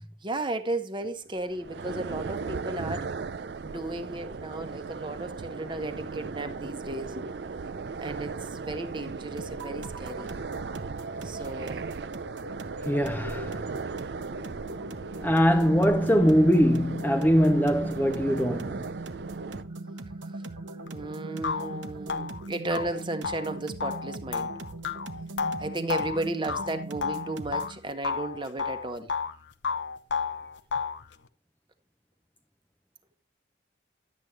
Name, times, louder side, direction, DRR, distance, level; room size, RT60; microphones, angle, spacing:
voice 1, 0.2-3.1 3.6-7.4 8.0-10.4 11.2-11.9 15.1-15.4 20.2-24.6 25.6-29.1, right 2 dB, 25° right, 1.0 m, -35 dB
sound 1, 1.4-19.6, right 4 dB, 65° right, 0.5 m, -37 dB
sound 2, 9.4-27.8, right 2 dB, 85° right, 0.9 m, -40 dB
voice 2, 12.8-13.7 15.2-18.8, equal, 10° left, 0.5 m, -22 dB
sound 3, 20.9-21.0 21.4-27.7 28.0-29.4 29.6-31.0, left 5 dB, 80° left, 0.8 m, -32 dB
11.5 x 8.2 x 3.3 m
head